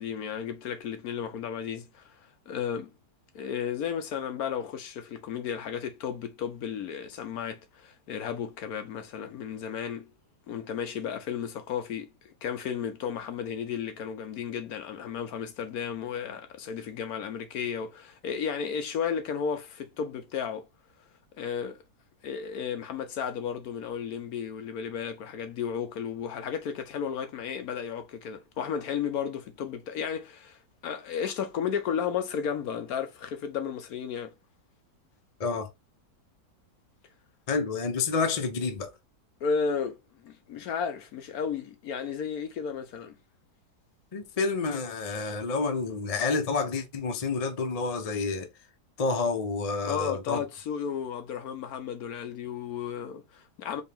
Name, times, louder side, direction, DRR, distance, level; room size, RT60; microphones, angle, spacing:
voice 1, 0.0-2.2 2.5-2.9 3.3-10.1 10.5-20.6 21.4-21.8 22.2-30.6 30.8-34.3 39.4-40.0 40.2-43.1 49.8-53.8, left 7 dB, 65° left, 1.0 m, -33 dB
voice 2, 37.5-38.9 44.1-48.5 49.0-50.4, left 4 dB, 45° left, 0.5 m, -29 dB
4.4 x 2.9 x 3.4 m
omnidirectional pair, 1.8 m